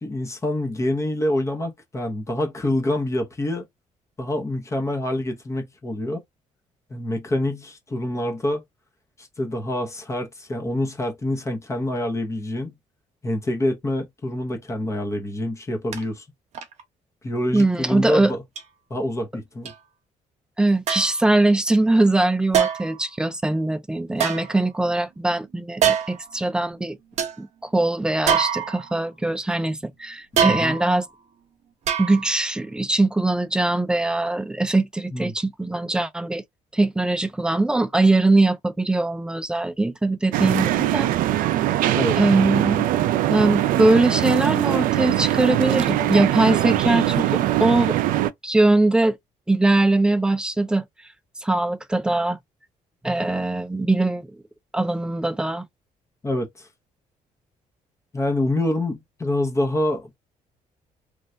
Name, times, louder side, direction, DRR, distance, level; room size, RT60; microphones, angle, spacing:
voice 1, 0.0-3.7 4.2-6.2 6.9-8.6 9.2-12.7 13.2-16.3 17.2-18.4 18.9-19.7 30.5-30.8 35.1-35.3 41.7-42.2 56.2-56.7 58.1-60.2, left 1 dB, 20° left, 0.8 m, -26 dB
sound 1, 15.9-16.0 16.5-16.8 17.6-17.7 18.6-18.7 19.7-19.8 20.9-21.2 22.5-23.0 24.1-25.0 25.8-26.3 26.8-26.9 27.2-27.4 28.3-29.1 30.4-31.0 31.9-32.4 32.8-32.9, right 8 dB, 55° right, 0.8 m, -24 dB
voice 2, 17.5-18.3 20.6-27.0 27.4-31.1 32.0-36.4 36.7-41.1 42.2-42.9 43.3-48.0 48.4-49.2 49.5-50.8 51.4-52.4 53.0-54.3 54.7-55.7, right 2 dB, 5° right, 0.3 m, -21 dB
sound 2, 40.3-48.3, right 13 dB, 85° right, 0.4 m, -21 dB
3.2 x 2.3 x 2.6 m
cardioid pair, 150°, 14 cm